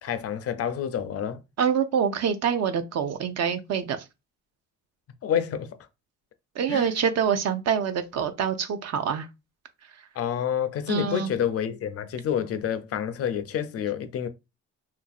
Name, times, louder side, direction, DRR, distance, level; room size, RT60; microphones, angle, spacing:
voice 1, 0.0-1.4 5.2-5.7 6.7-6.9 10.2-14.3, left 9 dB, 50° left, 0.4 m, -28 dB
voice 2, 1.6-4.0 6.6-9.3 10.9-11.3, right 7 dB, 60° right, 0.5 m, -26 dB
2.8 x 2.5 x 2.3 m
cardioid pair, 90°, 30 cm